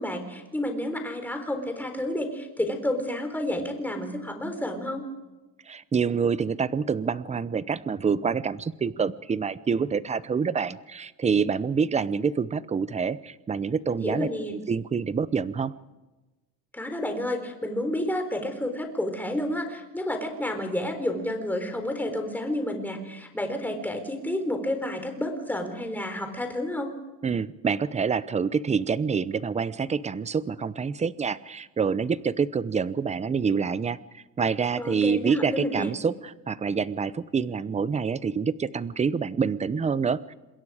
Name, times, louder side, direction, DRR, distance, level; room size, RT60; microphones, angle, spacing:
voice 1, 0.0-5.0 13.9-14.6 16.7-26.9 34.8-35.9, left 1 dB, 5° left, 5 dB, 4.0 m, -30 dB
voice 2, 5.7-14.3 14.7-15.7 27.2-40.3, right 6 dB, 20° right, 16 dB, 0.8 m, -27 dB
27.0 x 21.5 x 5.0 m, 1.1 s
cardioid pair, 130°, 33 cm